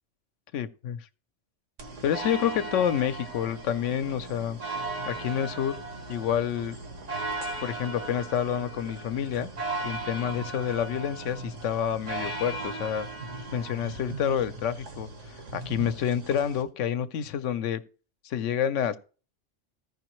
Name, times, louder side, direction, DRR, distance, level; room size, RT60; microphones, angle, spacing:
voice 1, 0.5-1.0 2.0-4.6 5.1-5.8 6.1-6.8 7.6-9.5 9.8-13.1 13.5-17.8 18.2-19.0, left 9 dB, 85° left, 1.0 m, -28 dB
sound 1, 1.8-16.6, right 2 dB, 90° right, 1.6 m, -37 dB
14.5 x 5.4 x 3.1 m
omnidirectional pair, 1.2 m